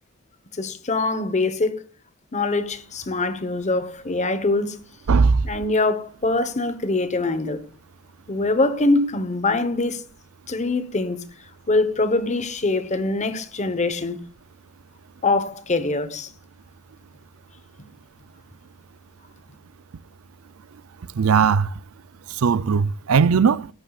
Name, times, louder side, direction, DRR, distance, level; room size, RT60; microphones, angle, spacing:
voice 1, 0.5-1.8 2.3-4.8 5.4-7.7 8.3-10.0 10.5-11.3 11.7-14.2 15.2-16.3, left 2 dB, 35° left, 1.1 m, -23 dB
voice 2, 5.1-5.5 21.2-21.7 22.4-23.7, right 5 dB, 85° right, 0.5 m, -18 dB
17.5 x 11.5 x 2.4 m
head